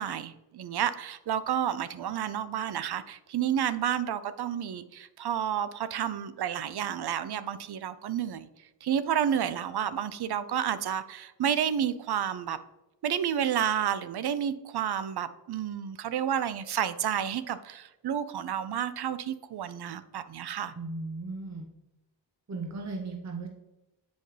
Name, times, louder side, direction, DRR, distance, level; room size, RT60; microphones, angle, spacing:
voice 1, 0.0-8.5 8.8-12.6 13.0-20.7, right 9 dB, 65° right, 13 dB, 0.6 m, -30 dB
voice 2, 20.8-21.7 22.5-23.5, right 3 dB, 40° right, 2 dB, 0.9 m, -36 dB
7.9 x 5.1 x 3.2 m, 0.98 s
cardioid pair, 70°, 43 cm